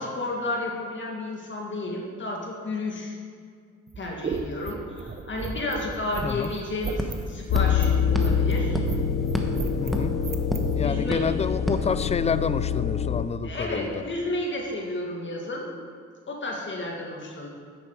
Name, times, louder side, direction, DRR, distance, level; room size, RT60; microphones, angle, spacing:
voice 1, 0.0-3.2 4.0-8.8 10.8-11.2 13.4-15.7 16.3-17.5, left 2 dB, 40° left, 0 dB, 2.1 m, -32 dB
sound 1, 3.9-10.7, right 4 dB, 30° right, 1.0 m, -34 dB
sound 2, 5.9-6.0 6.2-12.6, equal, ahead, 1.2 m, -34 dB
sound 3, 7.5-13.3, left 7 dB, 65° left, 0.7 m, -25 dB
voice 2, 9.8-10.2 10.7-14.0, left 5 dB, 20° left, 15 dB, 0.4 m, -28 dB
9.7 x 8.5 x 4.8 m, 2.1 s
cardioid pair, 90°, 30 cm